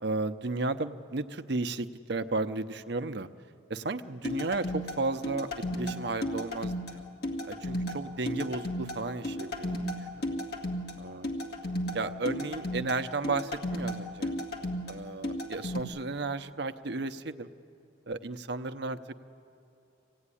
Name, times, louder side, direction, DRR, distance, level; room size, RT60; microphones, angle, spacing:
voice 1, 0.0-3.3 3.7-5.5 5.8-7.0 7.5-9.9 11.0-11.3 11.9-14.3 14.9-17.5 18.1-19.0, right 3 dB, 65° right, 9 dB, 0.8 m, -33 dB
sound 1, 4.2-15.8, left 1 dB, 60° left, 2.2 m, -34 dB
25.5 x 17.0 x 9.9 m, 2.7 s
head